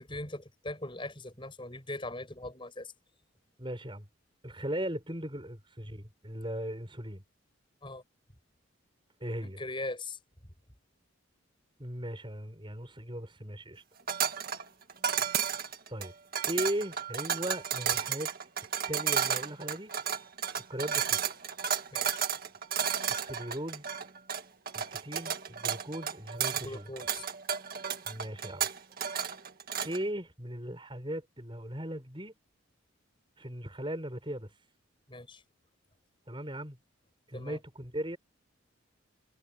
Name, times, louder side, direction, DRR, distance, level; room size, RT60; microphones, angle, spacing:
voice 1, 0.1-2.9 7.8-8.0 9.4-10.2 21.9-22.2 26.5-27.3 35.1-35.4 37.3-37.6, left 2 dB, 25° left, 6.6 m, -40 dB
voice 2, 3.6-4.1 4.4-7.2 9.2-9.6 11.8-13.8 15.2-15.3 15.9-16.1 16.5-18.3 18.9-19.9 20.5-21.2 23.1-23.8 24.7-26.9 28.0-28.7 29.8-32.4 33.4-34.5 36.3-36.8 37.3-38.2, right 1 dB, 25° right, 6.7 m, -38 dB
sound 1, 14.1-30.0, right 8 dB, 45° right, 2.0 m, -32 dB
head